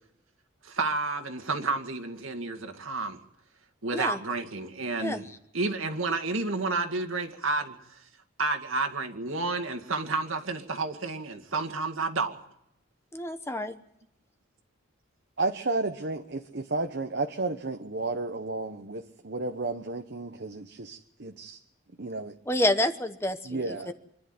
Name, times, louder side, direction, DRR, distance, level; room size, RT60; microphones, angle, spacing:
voice 1, 0.6-3.2 3.8-5.3 5.5-7.8 8.4-12.4, right 3 dB, 80° right, 2.2 m, -30 dB
voice 2, 13.1-13.7 22.5-23.9, left 1 dB, 10° left, 1.0 m, -28 dB
voice 3, 15.4-21.6 22.0-22.3 23.4-23.9, right 3 dB, 55° right, 1.0 m, -32 dB
25.5 x 11.0 x 9.6 m
head